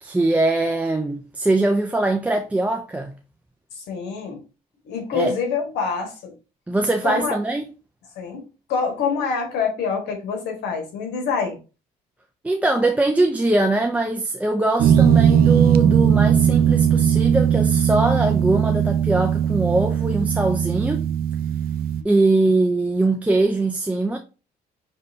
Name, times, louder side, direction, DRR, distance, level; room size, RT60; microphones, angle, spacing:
voice 1, 0.0-3.1 5.1-5.3 6.7-7.6 12.4-21.1 22.0-24.2, right 2 dB, 10° right, 0.4 m, -21 dB
voice 2, 3.7-4.4 4.8-6.3 7.0-7.4 8.1-11.6, left 5 dB, 80° left, 1.6 m, -26 dB
sound 1, 14.8-22.0, right 9 dB, 60° right, 0.5 m, -18 dB
5.3 x 3.2 x 2.7 m
cardioid pair, 110°, 17 cm